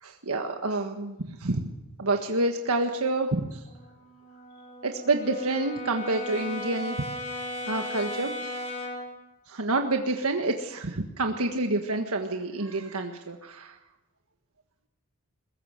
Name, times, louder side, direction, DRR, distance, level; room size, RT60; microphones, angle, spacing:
voice 1, 0.0-1.6 2.0-3.6 4.8-7.1 7.6-8.7 9.5-13.8, right 2 dB, 75° right, 4 dB, 1.6 m, -28 dB
Brass instrument, 3.7-9.2, left 1 dB, 30° left, 3.9 m, -36 dB
22.0 x 21.0 x 6.6 m, 0.98 s
head